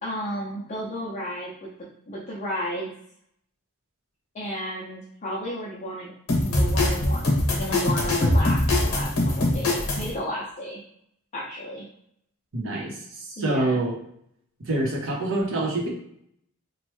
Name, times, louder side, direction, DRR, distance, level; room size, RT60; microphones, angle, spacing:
voice 1, 0.0-2.9 4.3-6.1 6.4-7.2 7.5-10.8 11.3-11.8 13.4-13.8, equal, 30° left, -5 dB, 0.5 m, -33 dB
sound 1, 6.3-10.1, left 1 dB, 70° left, 0.9 m, -22 dB
voice 2, 12.5-13.9 14.7-15.9, right 2 dB, 60° right, -1 dB, 0.8 m, -26 dB
3.0 x 2.1 x 3.1 m, 0.69 s
head